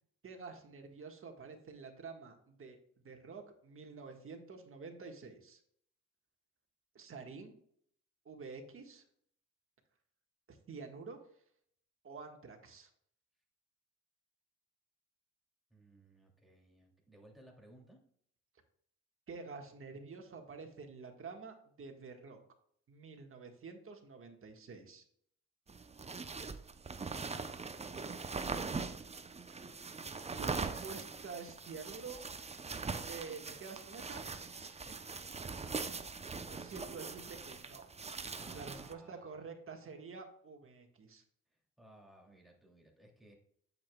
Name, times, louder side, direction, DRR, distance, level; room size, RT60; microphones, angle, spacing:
voice 1, 0.2-2.8 3.0-5.6 7.0-7.5 8.3-9.0 10.5-11.2 12.0-12.9 19.3-22.4 22.9-25.0 29.5-29.6 30.4-32.2 33.1-34.2 36.5-37.9 38.2-41.2, right 4 dB, 45° right, 4 dB, 1.7 m, -48 dB
voice 2, 15.7-18.0 27.9-28.7 34.8-35.0 38.3-39.5 41.8-43.3, right 1 dB, ahead, -1 dB, 2.9 m, -59 dB
sound 1, 25.7-38.9, right 4 dB, 20° right, 0.8 m, -42 dB
8.5 x 8.0 x 2.4 m, 0.64 s
cardioid pair, 90°, 30 cm